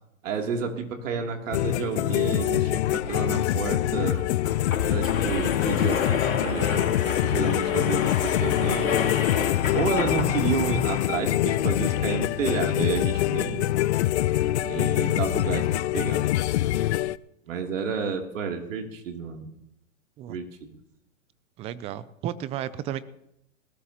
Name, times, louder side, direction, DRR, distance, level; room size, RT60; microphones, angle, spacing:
voice 1, 0.2-4.3 4.9-9.1 9.7-13.7 14.6-15.7 15.9-16.2 17.5-19.5 20.3-20.7, right 5 dB, 70° right, 3 dB, 3.0 m, -30 dB
sound 1, 1.5-17.2, left 14 dB, 55° left, 0.5 m, -25 dB
sound 2, 3.0-3.1 3.4-3.5 4.2-10.6, left 5 dB, 85° left, 3.1 m, -30 dB
sound 3, 3.0-11.1, left 7 dB, 20° left, 1.4 m, -42 dB
voice 2, 21.6-23.0, right 11 dB, 15° right, 17 dB, 0.4 m, -33 dB
20.0 x 17.5 x 2.9 m, 0.80 s
hypercardioid pair, 125°, 40 cm